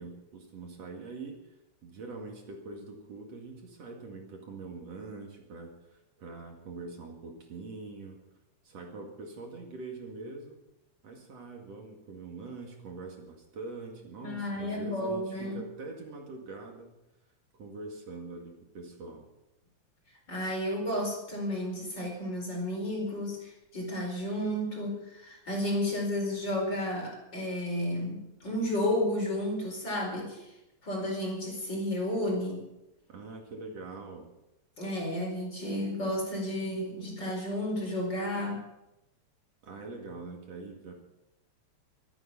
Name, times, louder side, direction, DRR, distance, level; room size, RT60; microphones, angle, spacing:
voice 1, 0.0-1.5 1.8-8.2 8.6-10.6 11.0-17.0 17.5-19.3 33.1-34.3 39.6-40.9, right 3 dB, 60° right, 1 dB, 3.2 m, -43 dB
voice 2, 14.2-15.6 20.3-30.5 30.8-32.6 34.8-38.6, left 1 dB, 35° left, 0 dB, 5.2 m, -32 dB
24.0 x 9.5 x 5.8 m, 0.92 s
omnidirectional pair, 3.4 m